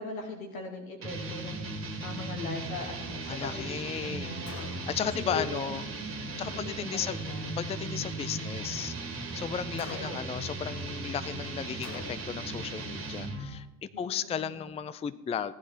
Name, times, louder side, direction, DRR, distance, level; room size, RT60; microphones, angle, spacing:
voice 1, 0.0-4.9 5.2-5.8 6.3-7.5 9.9-10.2 13.9-14.6, left 3 dB, 85° left, 3 dB, 2.2 m, -41 dB
sound 1, 1.0-13.5, right 2 dB, 30° right, 2.2 m, -37 dB
voice 2, 3.3-4.3 4.9-5.8 6.4-7.2 7.6-8.9 9.3-15.5, left 8 dB, 15° left, 14 dB, 0.5 m, -35 dB
Gunshot gunfire, 4.5-5.1 9.8-10.5 11.8-12.5, left 6 dB, 35° left, 1.3 m, -46 dB
15.5 x 10.0 x 4.4 m, 1.0 s
hypercardioid pair, 65°, 41 cm